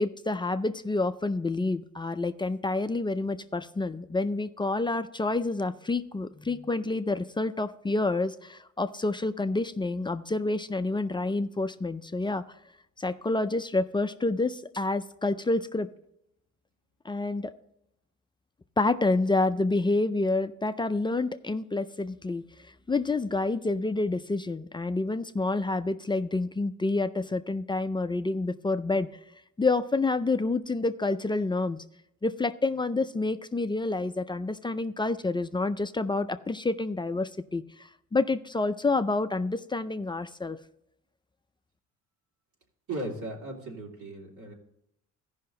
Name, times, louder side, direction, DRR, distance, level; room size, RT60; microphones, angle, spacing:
voice 1, 0.0-12.4 13.0-15.9 17.0-17.5 18.8-22.4 22.9-29.1 29.6-31.8 32.2-40.6, left 3 dB, 15° left, 11 dB, 0.4 m, -28 dB
voice 2, 42.9-44.5, right 2 dB, 75° right, -2 dB, 3.0 m, -37 dB
15.0 x 5.6 x 3.8 m, 0.80 s
cardioid pair, 90°, 30 cm